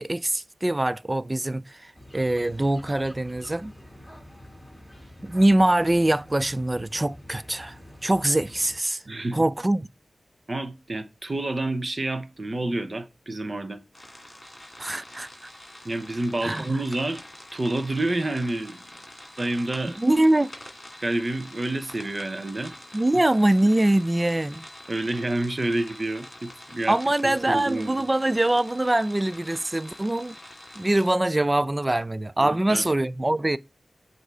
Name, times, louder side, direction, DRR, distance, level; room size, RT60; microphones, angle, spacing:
voice 1, 0.0-3.7 5.2-9.0 9.3-9.9 14.8-15.5 16.4-16.8 20.0-20.5 22.9-24.6 26.9-30.3 30.8-33.6, right 1 dB, 25° right, 0.3 m, -23 dB
sound 1, 1.9-8.8, equal, 5° right, 2.8 m, -47 dB
voice 2, 9.1-9.4 10.5-13.8 15.8-17.2 17.5-18.8 19.4-20.0 21.0-22.7 24.9-28.1 32.4-32.9, right 2 dB, 40° right, 0.9 m, -29 dB
sound 2, 13.9-31.1, left 1 dB, 20° left, 2.2 m, -45 dB
7.9 x 2.7 x 5.5 m
cardioid pair, 60°, 0 cm